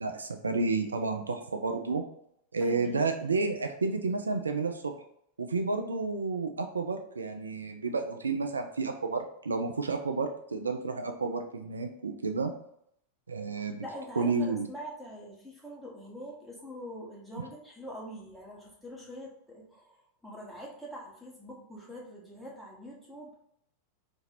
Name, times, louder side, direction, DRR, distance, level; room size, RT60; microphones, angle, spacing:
voice 1, 0.0-2.0 2.5-4.9 5.4-12.5 13.3-13.8 14.2-14.7, right 3 dB, 75° right, 6 dB, 0.3 m, -31 dB
voice 2, 2.6-3.4 13.6-23.3, equal, ahead, -4 dB, 1.1 m, -44 dB
2.8 x 2.6 x 4.1 m, 0.72 s
figure-of-eight pair, 90°, 0 cm